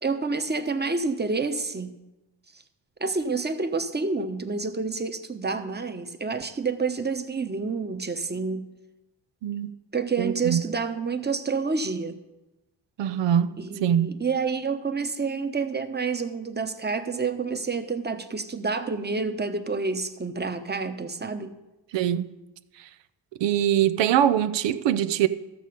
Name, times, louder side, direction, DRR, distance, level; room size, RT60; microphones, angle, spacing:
voice 1, 0.0-1.9 3.0-8.7 9.9-12.2 13.6-21.5, right 4 dB, 25° right, 1.1 m, -28 dB
voice 2, 10.2-10.6 13.0-14.1 21.9-22.3 23.4-25.3, right 10 dB, 90° right, 0.6 m, -23 dB
13.0 x 6.7 x 5.2 m
cardioid pair, 55°, 42 cm